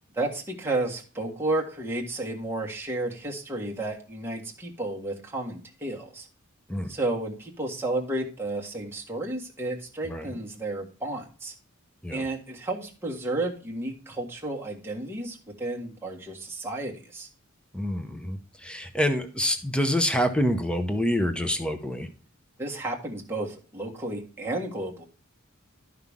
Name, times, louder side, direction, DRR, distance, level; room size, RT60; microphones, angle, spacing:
voice 1, 0.1-6.3 6.9-11.5 12.1-17.3 22.6-25.0, right 2 dB, 10° right, -1 dB, 1.6 m, -32 dB
voice 2, 17.7-22.1, equal, 5° left, 7 dB, 0.7 m, -27 dB
12.0 x 5.8 x 3.6 m, 0.37 s
head